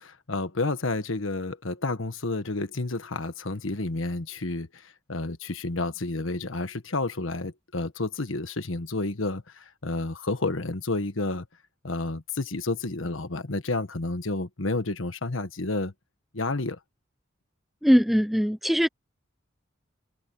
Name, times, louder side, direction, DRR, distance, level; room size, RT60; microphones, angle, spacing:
voice 1, 0.0-11.5 11.8-15.9 16.3-16.8, left 2 dB, 85° left, 1.4 m, -30 dB
voice 2, 17.8-18.9, equal, ahead, 0.6 m, -21 dB
head